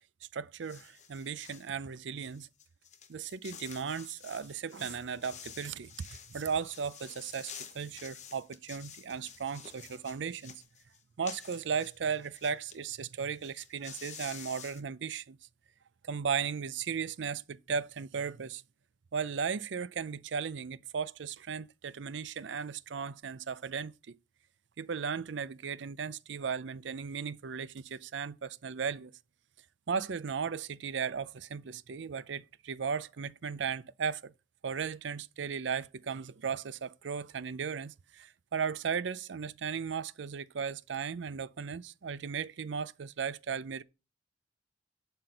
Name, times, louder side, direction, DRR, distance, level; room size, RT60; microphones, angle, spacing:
voice 1, 0.3-2.5 3.1-10.6 11.2-15.4 16.0-18.6 19.1-24.2 24.8-29.1 29.9-34.3 34.6-43.8, right 6 dB, 75° right, 0.5 m, -36 dB
sound 1, 0.6-1.7 2.2-12.8 13.1-13.2 13.4-14.8, left 8 dB, 40° left, 0.9 m, -50 dB
11.5 x 4.4 x 5.2 m
head